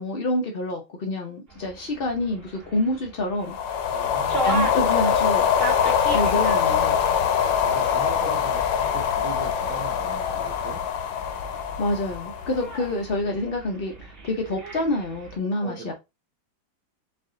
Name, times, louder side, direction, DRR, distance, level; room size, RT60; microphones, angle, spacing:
voice 1, 0.0-3.5 4.4-5.4 6.1-7.0 11.8-15.9, left 2 dB, 85° left, 0.5 m, -27 dB
sound 1, 1.5-15.4, right 2 dB, 30° right, 1.4 m, -37 dB
sound 2, 3.4-12.9, left 8 dB, 70° left, 1.2 m, -23 dB
voice 2, 3.9-4.5 7.4-10.8 13.2-13.4 15.6-15.9, right 4 dB, 50° right, 1.2 m, -39 dB
4.7 x 2.5 x 3.7 m
omnidirectional pair, 2.2 m